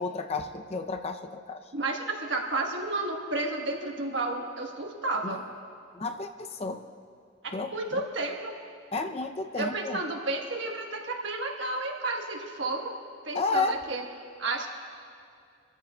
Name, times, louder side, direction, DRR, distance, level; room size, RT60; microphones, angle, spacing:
voice 1, 0.0-1.6 5.2-5.3 5.9-6.8 7.5-8.0 8.9-10.0 13.3-13.8, left 3 dB, 30° left, 6 dB, 0.5 m, -32 dB
voice 2, 1.7-5.4 7.4-8.5 9.5-13.0 13.2-14.1 14.4-14.7, right 2 dB, 65° right, 1 dB, 1.4 m, -32 dB
24.5 x 14.0 x 2.3 m, 2.4 s
head